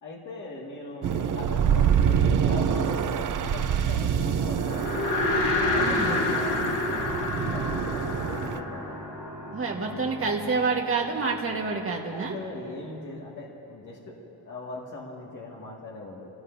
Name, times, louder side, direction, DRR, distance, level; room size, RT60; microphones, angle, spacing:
voice 1, 0.0-4.9 5.7-9.0 9.9-10.1 12.1-14.1 14.4-16.3, left 2 dB, 50° left, -4 dB, 2.2 m, -40 dB
sound 1, 1.0-8.6, right 8 dB, 50° right, 0.6 m, -26 dB
sound 2, 4.6-10.0, left 2 dB, 75° left, 1.8 m, -28 dB
sound 3, 5.4-12.8, right 1 dB, 5° right, 2.1 m, -42 dB
voice 2, 5.8-6.2 9.5-12.4, right 4 dB, 35° right, 0 dB, 1.6 m, -28 dB
27.0 x 17.5 x 2.7 m, 2.9 s
wide cardioid pair, 180°, 40 cm